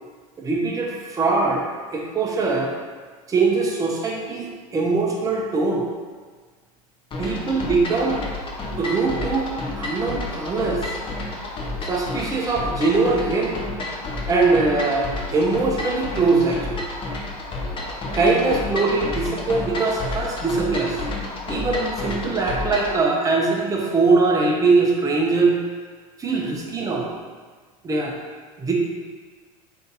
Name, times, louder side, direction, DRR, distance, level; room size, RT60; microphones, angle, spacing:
voice 1, 0.4-1.6 1.9-2.7 3.3-5.8 7.2-8.2 8.8-9.5 9.8-10.9 11.8-13.6 14.3-16.8 18.1-21.0 21.5-25.6 26.2-27.1 27.8-28.1 28.6-28.7, right 3 dB, 20° right, -2 dB, 0.6 m, -22 dB
sound 1, 7.1-23.0, left 2 dB, 25° left, 0.6 m, -30 dB
2.7 x 2.5 x 3.8 m, 1.5 s
hypercardioid pair, 95°, 19 cm